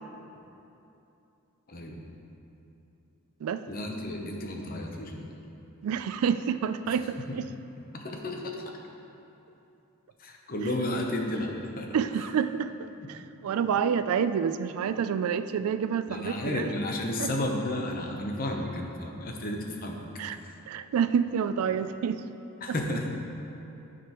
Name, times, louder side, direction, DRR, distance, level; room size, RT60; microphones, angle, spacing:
voice 1, 1.7-2.1 3.7-5.3 6.9-7.3 7.9-8.5 10.2-11.5 11.8-11.9 16.1-20.0 22.6-23.1, left 1 dB, 40° left, 1 dB, 0.8 m, -32 dB
voice 2, 5.8-7.4 11.9-16.6 17.2-17.3 20.2-20.4 20.7-22.2, right 7 dB, 80° right, 11 dB, 0.3 m, -28 dB
12.5 x 5.1 x 3.0 m, 2.9 s
head